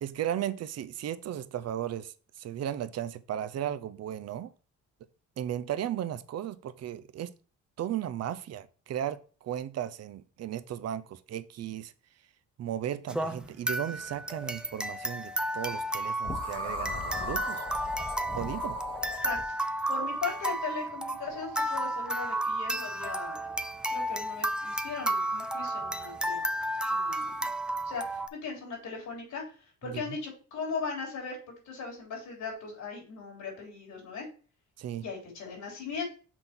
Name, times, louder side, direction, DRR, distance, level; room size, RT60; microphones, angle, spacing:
voice 1, 0.0-4.5 5.4-7.3 7.8-11.9 12.6-17.6 18.3-18.8 29.8-30.0 34.8-35.0, right 11 dB, 55° right, 0.6 m, -35 dB
sound 1, 13.1-28.3, right 1 dB, 5° right, 0.4 m, -32 dB
sound 2, 16.2-19.5, left 2 dB, 15° left, 1.0 m, -37 dB
voice 2, 19.9-23.5 23.9-26.4 26.9-27.5 27.8-29.4 29.8-31.4 31.7-34.3 35.0-36.0, left 5 dB, 75° left, 3.3 m, -38 dB
5.9 x 3.8 x 4.4 m
cardioid pair, 90°, 30 cm